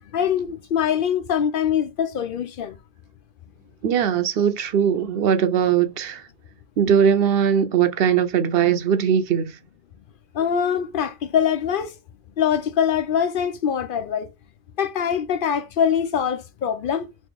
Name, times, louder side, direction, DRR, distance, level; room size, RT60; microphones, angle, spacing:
voice 1, 0.1-2.8 10.3-11.9 12.4-14.3 14.8-17.1, left 8 dB, 65° left, 0.7 m, -23 dB
voice 2, 3.8-6.2 6.8-9.5, right 8 dB, 70° right, 0.8 m, -20 dB
3.1 x 2.8 x 3.4 m
omnidirectional pair, 1.0 m